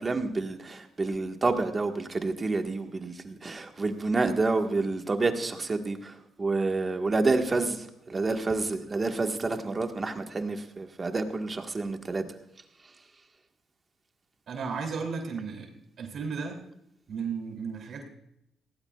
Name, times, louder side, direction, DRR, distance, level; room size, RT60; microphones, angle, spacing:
voice 1, 0.0-12.2, right 3 dB, 30° right, 4 dB, 1.6 m, -29 dB
voice 2, 14.5-15.7 16.0-16.6 17.1-18.0, right 5 dB, 60° right, 2 dB, 3.0 m, -34 dB
18.0 x 17.0 x 2.4 m, 0.77 s
cardioid pair, 90°, 0 cm